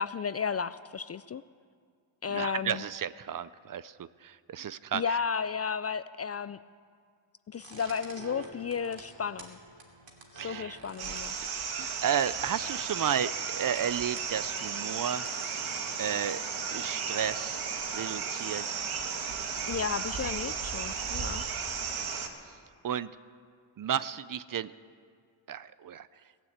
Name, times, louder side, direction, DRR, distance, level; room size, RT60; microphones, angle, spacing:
voice 1, 0.0-1.4 2.2-2.8 4.9-6.6 7.5-9.6 10.3-11.3 19.7-21.4, left 6 dB, 35° left, 15 dB, 0.4 m, -33 dB
voice 2, 2.3-5.2 10.4-10.8 11.8-15.3 16.0-16.4 16.7-17.6 17.9-18.6 22.8-23.1 23.8-24.7 25.5-26.1, right 9 dB, 45° right, 16 dB, 0.5 m, -33 dB
sound 1, 7.6-16.0, right 2 dB, 65° right, 2.8 m, -50 dB
sound 2, 11.0-22.3, right 6 dB, 85° right, 1.5 m, -34 dB
17.0 x 9.0 x 8.1 m, 2.1 s
cardioid pair, 65°, 49 cm